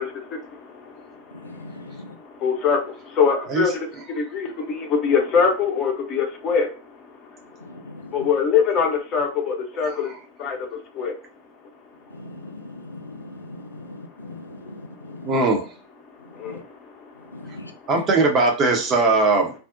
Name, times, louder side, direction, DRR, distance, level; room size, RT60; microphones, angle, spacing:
voice 1, 0.0-6.8 7.6-7.8 8.1-10.1 10.4-11.1 16.3-17.8, left 6 dB, 35° left, 2 dB, 0.6 m, -24 dB
voice 2, 1.4-2.2 7.6-8.3 12.1-15.3 16.5-16.6 17.3-17.7, left 2 dB, 85° left, 6 dB, 0.3 m, -40 dB
voice 3, 15.2-15.7 17.9-19.5, right 3 dB, 30° right, 2 dB, 0.6 m, -19 dB
2.5 x 2.0 x 2.4 m, 0.35 s
figure-of-eight pair, 90°, 0 cm